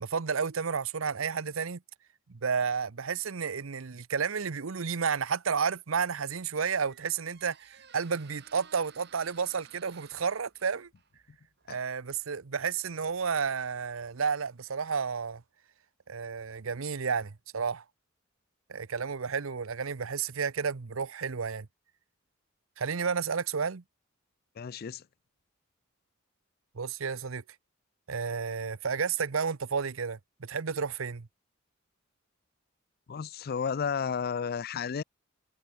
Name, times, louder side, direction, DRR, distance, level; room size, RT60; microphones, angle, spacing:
voice 1, 0.0-1.8 2.3-10.9 11.7-15.4 16.1-17.8 18.7-21.7 22.8-23.8 26.7-27.4 28.1-31.3, right 6 dB, 85° right, 0.8 m, -31 dB
Squeak, 6.2-14.8, right 7 dB, 55° right, 5.3 m, -59 dB
voice 2, 24.6-25.0 33.1-35.0, left 6 dB, 50° left, 0.4 m, -32 dB
head